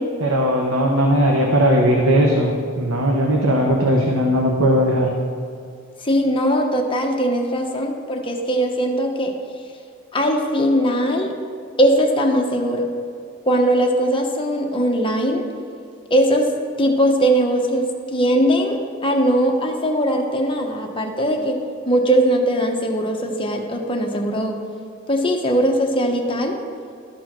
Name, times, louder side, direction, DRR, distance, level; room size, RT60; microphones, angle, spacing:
voice 1, 0.2-2.5 2.8-5.1, equal, 85° right, -1 dB, 1.0 m, -18 dB
voice 2, 6.0-9.3 10.1-11.3 11.8-12.9 13.5-15.4 16.1-16.5 16.8-17.9 18.1-21.6 21.9-24.6 25.1-26.6, equal, 25° left, 2 dB, 1.0 m, -20 dB
12.5 x 4.7 x 6.0 m, 2.4 s
head